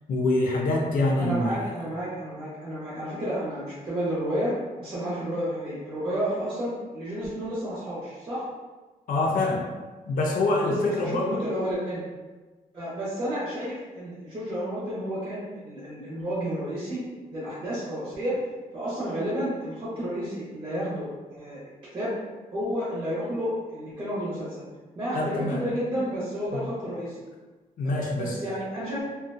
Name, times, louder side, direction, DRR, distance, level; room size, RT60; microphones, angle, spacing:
voice 1, 0.1-1.5 9.1-9.7 10.1-11.3 25.1-25.6 27.8-28.4, left 2 dB, 65° left, -1 dB, 0.5 m, -25 dB
voice 2, 1.2-8.5 10.6-12.0 12.7-17.0 17.3-18.4 18.7-21.6 21.9-22.1 22.5-24.6 24.9-27.2 27.8-29.0, equal, 35° right, -10 dB, 0.9 m, -31 dB
2.5 x 2.2 x 2.6 m, 1.2 s
wide cardioid pair, 160°, 15 cm